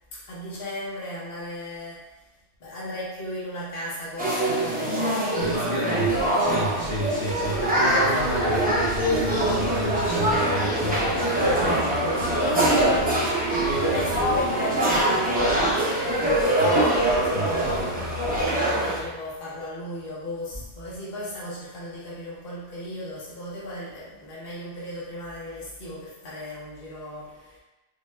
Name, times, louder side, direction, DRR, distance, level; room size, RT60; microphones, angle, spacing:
voice 1, 0.1-2.1 2.6-6.4 13.9-17.9 18.5-27.6, left 1 dB, 55° left, -7 dB, 1.1 m, -37 dB
sound 1, 4.2-19.0, right 1 dB, 15° right, 0.4 m, -23 dB
voice 2, 5.4-6.1 6.4-14.4 16.6-16.9 17.3-18.9, left 1 dB, 80° left, -11 dB, 1.5 m, -32 dB
sound 2, 6.1-8.3 8.6-11.2 11.5-15.1 15.4-16.6 17.0-18.4, right 1 dB, 45° right, 0.8 m, -39 dB
sound 3, 8.2-20.5 21.1-21.5 22.1-22.2 22.5-22.6, right 2 dB, 70° right, 1.1 m, -42 dB
4.0 x 2.2 x 3.2 m, 1.1 s
omnidirectional pair, 1.2 m